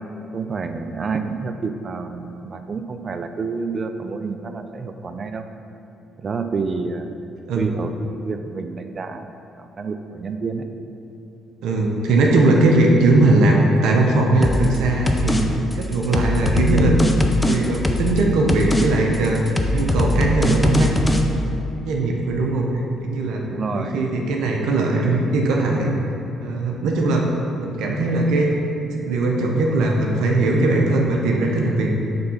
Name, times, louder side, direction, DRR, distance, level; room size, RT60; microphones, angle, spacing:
voice 1, 0.3-5.4 6.2-7.1 7.5-9.3 9.6-10.6 23.5-24.0 26.8-27.1, right 4 dB, 45° right, 7 dB, 0.5 m, -28 dB
voice 2, 11.6-17.0 17.4-19.4 19.7-20.9 21.8-23.4 23.7-25.9 26.4-27.3 27.6-28.5 28.9-32.0, right 2 dB, 75° right, 0 dB, 0.7 m, -19 dB
sound 1, 14.4-14.8 15.1-15.4 15.7-18.2 18.5-18.9 19.1-21.2, left 1 dB, 15° left, 0.6 m, -21 dB
6.7 x 3.5 x 5.6 m, 2.8 s
supercardioid pair, 55°, 0 cm